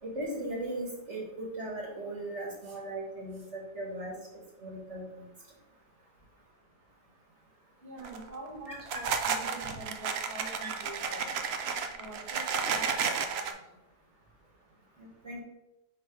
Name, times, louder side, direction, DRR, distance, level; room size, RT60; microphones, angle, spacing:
voice 1, 0.0-4.2 4.6-5.3 8.7-8.8 10.6-10.7 15.0-15.4, right 1 dB, 45° right, -3 dB, 1.6 m, -38 dB
voice 2, 7.8-11.3 11.9-12.8 13.3-13.5, right 2 dB, 10° left, -4 dB, 1.1 m, -45 dB
sound 1, 8.0-8.3 8.8-13.5, right 6 dB, 80° right, 0.5 m, -32 dB
4.8 x 4.1 x 4.9 m, 0.93 s
omnidirectional pair, 1.8 m